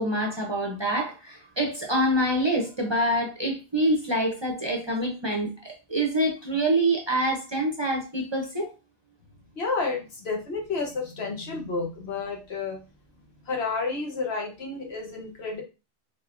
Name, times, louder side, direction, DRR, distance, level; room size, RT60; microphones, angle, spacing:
voice 1, 0.0-8.7, right 1 dB, 30° right, 0.6 m, -26 dB
voice 2, 9.5-12.8 13.4-15.6, left 4 dB, 75° left, 1.2 m, -30 dB
3.6 x 3.4 x 2.5 m
omnidirectional pair, 1.1 m